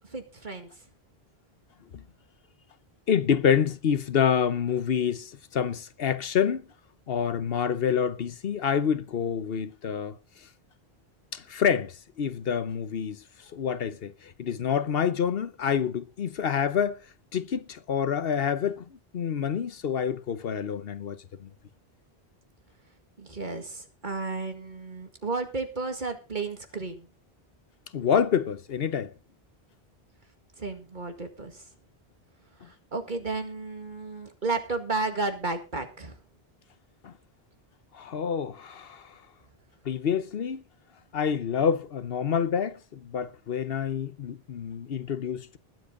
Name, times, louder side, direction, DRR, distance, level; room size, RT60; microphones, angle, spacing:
voice 1, 0.1-0.7 23.2-27.1 30.6-31.6 32.6-36.2, right 3 dB, 50° right, 2.1 m, -33 dB
voice 2, 3.1-6.7 7.1-10.2 11.3-13.2 13.5-17.0 17.3-18.8 19.1-21.5 27.9-29.1 37.0-37.1 37.9-39.1 39.8-40.6 41.1-45.6, left 7 dB, 70° left, 1.0 m, -27 dB
20.5 x 7.8 x 3.8 m
omnidirectional pair, 1.0 m